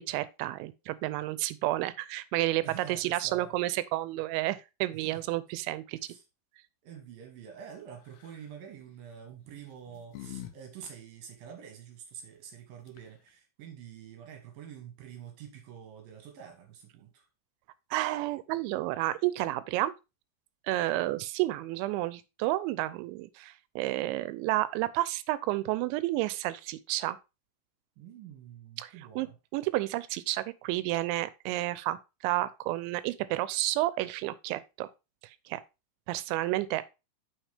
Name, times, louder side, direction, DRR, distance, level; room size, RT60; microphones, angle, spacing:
voice 1, 0.0-6.0 17.9-19.9 20.7-27.2 28.8-29.3 29.5-32.0 32.2-34.9 35.2-35.6 36.1-36.9, right 17 dB, 85° right, 2.9 m, -31 dB
voice 2, 2.6-3.6 4.9-5.2 6.1-6.2 6.8-17.3 28.0-29.4, right 8 dB, 65° right, 2.5 m, -47 dB
sound 1, 8.1-8.5 9.4-10.5 10.8-10.9 12.6-12.7 12.9-13.3, left 13 dB, 80° left, 2.5 m, -45 dB
7.2 x 5.6 x 3.3 m
omnidirectional pair, 5.3 m